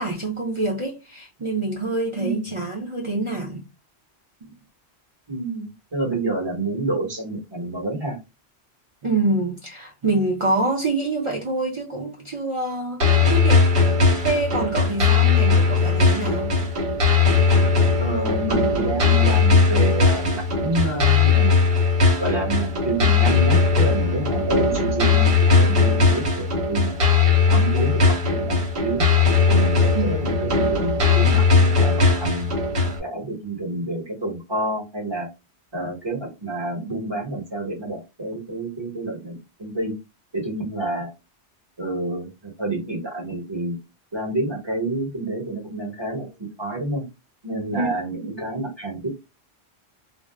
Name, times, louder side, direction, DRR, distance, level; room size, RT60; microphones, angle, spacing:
voice 1, 0.0-3.6 4.4-4.6 9.0-13.0 13.3-13.7 14.2-16.5 29.9-30.1 47.7-47.9, right 2 dB, 40° right, 0.4 m, -26 dB
voice 2, 2.2-2.5 5.3-8.2 18.0-21.7 22.2-27.0 27.5-29.1 29.5-32.5 33.0-35.3 35.7-39.9 40.3-41.1 41.8-43.8 44.1-46.3 46.6-47.0 47.4-49.2, right 2 dB, 25° right, 1.1 m, -28 dB
sound 1, 13.0-33.0, left 4 dB, 60° right, 1.1 m, -18 dB
2.5 x 2.0 x 3.2 m
omnidirectional pair, 1.1 m